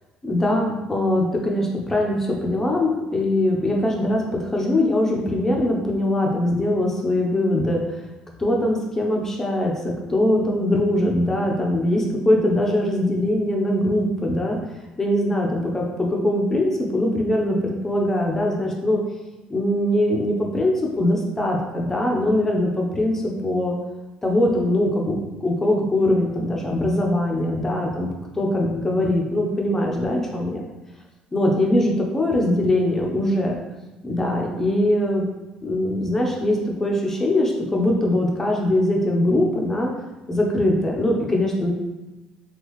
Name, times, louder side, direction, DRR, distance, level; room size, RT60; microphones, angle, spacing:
voice 1, 0.2-7.8 8.4-14.6 15.0-19.0 19.5-23.7 24.2-30.6 31.3-33.6 34.0-35.2 35.6-39.9 40.3-41.7, left 1 dB, 15° left, -1 dB, 0.7 m, -22 dB
3.7 x 2.4 x 3.0 m, 1.1 s
cardioid pair, 110°, 2 cm